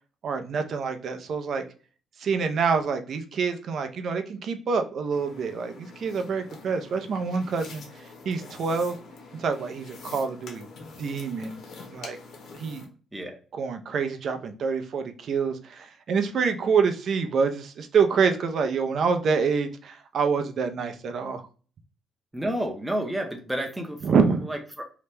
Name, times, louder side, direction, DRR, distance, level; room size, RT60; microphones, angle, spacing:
voice 1, 0.2-1.6 2.2-7.8 8.2-9.0 9.3-10.7 11.0-11.6 11.9-12.2 12.5-12.9 13.5-21.4 24.0-24.5, right 5 dB, 60° right, 7 dB, 0.5 m, -26 dB
sound 1, 5.1-12.9, left 3 dB, 70° left, 0.8 m, -46 dB
voice 2, 22.3-24.0 24.5-24.8, right 1 dB, 10° right, 2 dB, 0.6 m, -30 dB
2.8 x 2.2 x 3.3 m, 0.38 s
cardioid pair, 90°, 0 cm